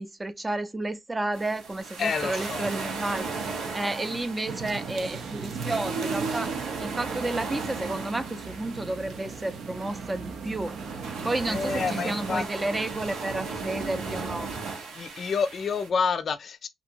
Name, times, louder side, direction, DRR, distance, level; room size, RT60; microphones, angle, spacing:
voice 1, 0.0-3.3 3.7-6.6 6.8-10.8 11.2-14.5, right 2 dB, 20° right, 0.5 m, -31 dB
sound 1, 1.3-15.9, right 4 dB, 90° right, 1.1 m, -36 dB
voice 2, 2.0-2.7 4.1-4.2 11.5-12.8 15.0-16.7, left 5 dB, 50° left, 0.4 m, -29 dB
sound 2, 4.5-12.5, right 5 dB, 65° right, 0.6 m, -36 dB
2.7 x 2.6 x 2.5 m
cardioid pair, 90°, 0 cm